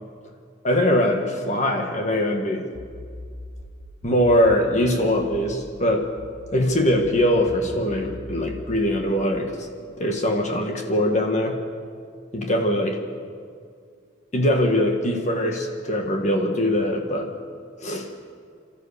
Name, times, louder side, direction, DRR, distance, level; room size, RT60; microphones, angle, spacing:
voice 1, 0.6-2.7 4.0-6.1 6.5-9.5 10.0-11.6 12.3-13.0 14.3-17.3 17.8-18.1, left 1 dB, 40° left, 3 dB, 1.6 m, -22 dB
sound 1, 2.7-5.8 6.2-9.2, left 1 dB, 75° left, 2.1 m, -41 dB
27.5 x 13.5 x 6.9 m, 2.2 s
head